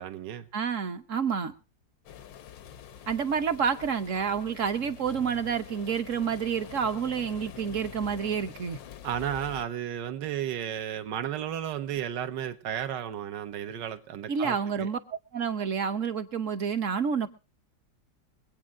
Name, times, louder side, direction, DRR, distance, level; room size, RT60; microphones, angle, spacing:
voice 1, 0.0-0.5 9.0-14.9, right 10 dB, 75° right, 1.6 m, -33 dB
voice 2, 0.5-1.5 3.1-8.8 14.3-15.0 15.3-17.3, right 6 dB, 55° right, 1.1 m, -29 dB
sound 1, 2.1-9.7, left 8 dB, 85° left, 1.5 m, -46 dB
23.5 x 8.8 x 3.6 m
omnidirectional pair, 1.9 m